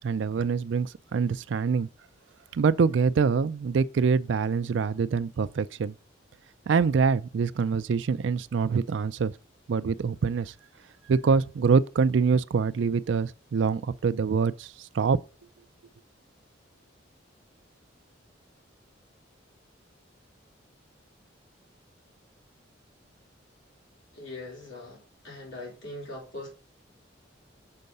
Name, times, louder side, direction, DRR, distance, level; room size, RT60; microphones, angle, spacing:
voice 1, 0.0-1.9 2.5-5.9 6.7-9.3 9.7-10.5 11.1-15.2, right 5 dB, 75° right, 0.4 m, -25 dB
voice 2, 24.1-26.5, left 2 dB, 80° left, 3.8 m, -41 dB
6.6 x 4.6 x 5.3 m
head